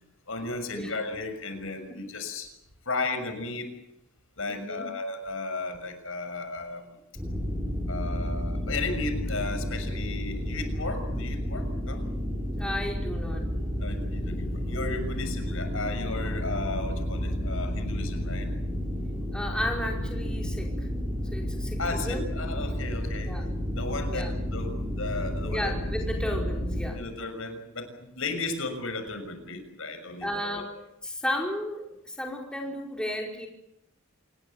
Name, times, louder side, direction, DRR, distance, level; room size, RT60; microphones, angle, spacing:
voice 1, 0.3-2.5 2.8-3.7 4.4-6.8 7.9-12.0 13.8-18.5 21.8-23.4 23.7-25.7 26.9-30.6, left 3 dB, 75° left, 8 dB, 6.4 m, -35 dB
voice 2, 4.5-4.9 12.5-13.5 19.3-20.9 21.3-22.3 23.3-23.5 24.1-24.3 25.4-27.0 30.2-30.7 31.0-33.5, left 1 dB, 5° left, 0 dB, 5.0 m, -33 dB
sound 1, 7.2-26.9, equal, 15° right, 5.8 m, -31 dB
27.5 x 20.0 x 8.0 m, 0.82 s
head